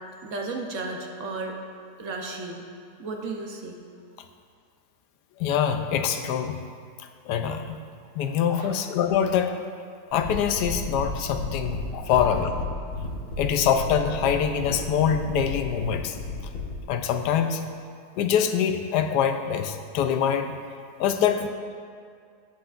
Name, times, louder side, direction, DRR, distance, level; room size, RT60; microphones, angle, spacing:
voice 1, 0.2-1.6 2.0-2.6 3.0-3.8 8.6-8.8, right 3 dB, 60° right, 2 dB, 1.0 m, -34 dB
voice 2, 5.4-6.6 7.3-7.8 8.1-9.6 10.1-12.7 13.4-16.2 16.9-17.6 18.2-20.6 21.0-21.5, left 8 dB, 85° left, 7 dB, 1.2 m, -24 dB
sound 1, 10.1-16.8, left 2 dB, 60° left, 2.1 m, -33 dB
16.0 x 5.7 x 2.4 m, 2.2 s
omnidirectional pair, 1.7 m